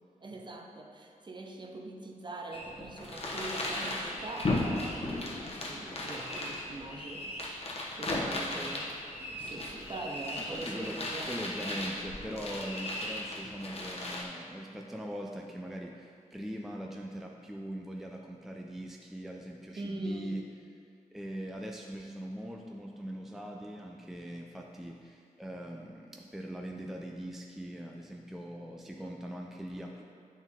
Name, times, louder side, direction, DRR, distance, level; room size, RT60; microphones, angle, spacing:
voice 1, 0.2-8.9 9.2-11.3 19.8-20.4, right 2 dB, 35° right, 1 dB, 0.7 m, -43 dB
sound 1, 2.5-14.2, left 1 dB, 45° left, 1.1 m, -36 dB
voice 2, 8.1-8.9 10.4-11.0 11.2-20.4 21.1-30.0, equal, ahead, 0 dB, 0.4 m, -41 dB
8.9 x 4.2 x 3.6 m, 2.3 s
wide cardioid pair, 90°, 14 cm